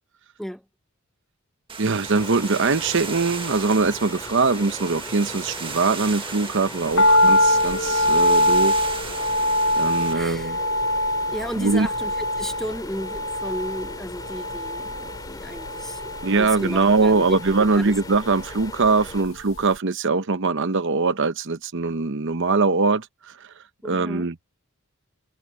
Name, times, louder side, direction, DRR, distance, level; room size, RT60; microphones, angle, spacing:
sound 1, 1.7-10.1, right 5 dB, 25° right, 1.7 m, -36 dB
voice 1, 1.8-8.7 9.8-10.6 11.6-11.9 16.2-23.1 23.8-24.3, right 4 dB, 60° right, 0.9 m, -22 dB
sound 2, 2.0-19.2, left 2 dB, 20° left, 5.0 m, -40 dB
sound 3, 7.0-19.3 19.5-19.6, left 1 dB, 60° left, 0.9 m, -23 dB
voice 2, 10.1-10.6 11.3-17.4 17.7-18.0 23.8-24.3, equal, ahead, 0.9 m, -34 dB
head